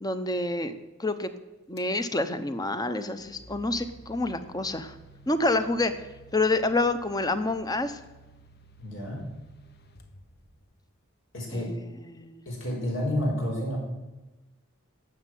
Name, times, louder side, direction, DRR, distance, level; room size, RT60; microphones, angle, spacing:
voice 1, 0.0-0.7 1.0-1.3 1.7-4.9 5.3-6.1 6.3-8.0 11.5-12.4, left 2 dB, 20° left, 10 dB, 0.9 m, -28 dB
sound 1, 1.8-2.0 2.9-10.9, right 2 dB, 50° left, 1.2 m, -52 dB
voice 2, 8.8-9.2 11.3-11.7 12.4-13.8, left 1 dB, 70° left, -1 dB, 4.7 m, -30 dB
12.5 x 7.5 x 9.4 m, 1.1 s
head